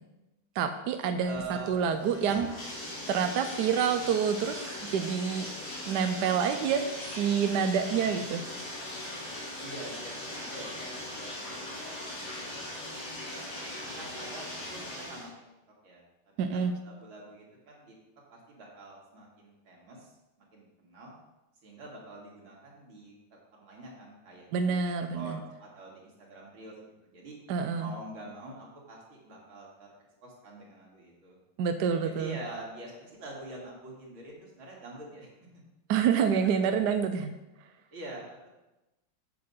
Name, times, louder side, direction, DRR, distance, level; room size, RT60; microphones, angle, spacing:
voice 1, 0.6-1.3 1.7-5.5 5.9-8.4 16.4-16.7 24.5-25.4 27.5-27.9 31.6-32.4 35.9-37.3, right 7 dB, 70° right, 7 dB, 1.1 m, -28 dB
Bathtub (filling or washing), 1.2-15.3, left 1 dB, 65° left, 3.4 m, -40 dB
voice 2, 1.2-1.8 7.8-8.2 9.6-11.6 12.2-12.4 13.2-15.4 15.8-16.0 16.5-17.9 18.3-20.1 20.5-21.1 21.6-24.8 25.1-26.7 27.0-27.3 27.8-29.9 30.2-31.4 32.0-35.3 36.1-36.2 37.9-38.5, right 2 dB, 85° right, -3 dB, 3.1 m, -46 dB
7.7 x 7.6 x 5.4 m, 1.0 s
omnidirectional pair, 2.2 m